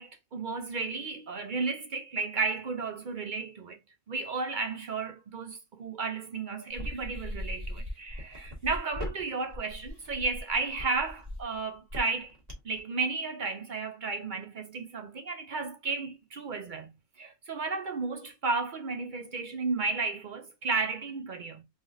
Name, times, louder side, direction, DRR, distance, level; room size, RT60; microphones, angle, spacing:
voice 1, 0.0-3.8 4.1-12.4 12.6-16.9 17.2-21.6, right 4 dB, 60° right, 0.5 m, -33 dB
sound 1, 6.7-12.8, left 1 dB, 30° right, 1.5 m, -39 dB
3.5 x 3.5 x 2.5 m
omnidirectional pair, 1.5 m